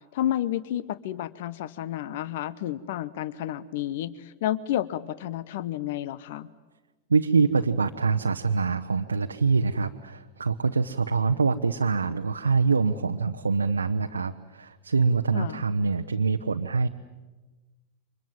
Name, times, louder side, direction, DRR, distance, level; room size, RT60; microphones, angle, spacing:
voice 1, 0.1-6.5 15.3-15.6, left 12 dB, 55° left, 19 dB, 0.9 m, -31 dB
voice 2, 7.1-16.9, right 4 dB, 75° right, 5 dB, 0.9 m, -25 dB
29.5 x 25.0 x 7.7 m, 1.2 s
figure-of-eight pair, 90°, 0 cm